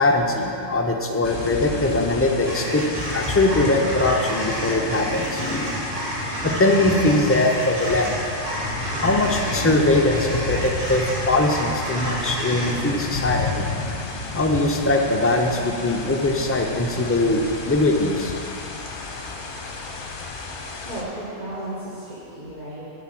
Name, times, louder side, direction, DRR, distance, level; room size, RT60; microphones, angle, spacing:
voice 1, 0.0-8.2 9.0-13.7 14.3-18.3, left 2 dB, 20° left, 2 dB, 0.3 m, -21 dB
sound 1, 1.2-21.0, left 4 dB, 50° left, 0.9 m, -33 dB
sound 2, 2.5-14.8, right 1 dB, 75° right, 1.8 m, -30 dB
voice 2, 20.9-23.0, right 1 dB, 35° right, -8 dB, 1.3 m, -34 dB
7.3 x 5.8 x 7.6 m, 2.7 s
omnidirectional pair, 1.3 m